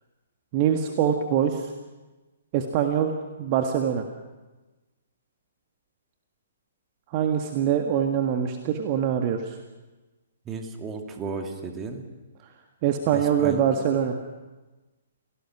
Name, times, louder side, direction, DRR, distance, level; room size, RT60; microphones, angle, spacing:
voice 1, 0.5-1.7 2.5-4.1 7.1-9.6 12.8-14.2, right 8 dB, 35° right, 5 dB, 1.7 m, -24 dB
voice 2, 10.5-12.0 13.1-13.6, right 3 dB, 20° right, 4 dB, 2.5 m, -34 dB
28.5 x 17.5 x 6.1 m, 1.2 s
figure-of-eight pair, 125°, 0 cm